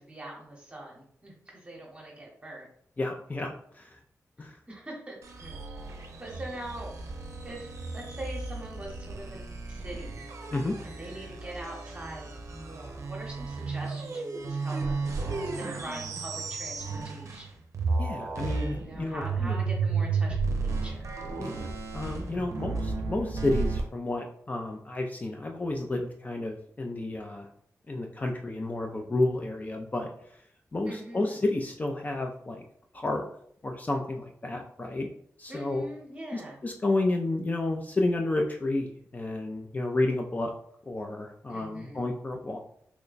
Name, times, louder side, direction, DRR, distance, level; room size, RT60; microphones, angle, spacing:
voice 1, 0.0-2.7 4.4-6.9 7.4-10.2 10.8-17.5 18.7-21.1 30.9-31.4 35.5-36.6 41.5-42.1, right 1 dB, 25° right, -2 dB, 0.9 m, -43 dB
voice 2, 3.0-4.0 4.4-4.6 10.5-10.8 18.0-19.6 21.4-21.7 21.9-27.5 27.9-30.1 30.7-32.6 32.9-33.3 33.6-35.1 35.4-35.8 36.3-40.5 40.9-42.6, left 2 dB, 30° left, 2 dB, 0.4 m, -31 dB
sound 1, 5.2-17.5 17.7-23.8, right 4 dB, 65° right, 0.5 m, -33 dB
3.0 x 2.2 x 3.9 m, 0.66 s
wide cardioid pair, 85°, 6 cm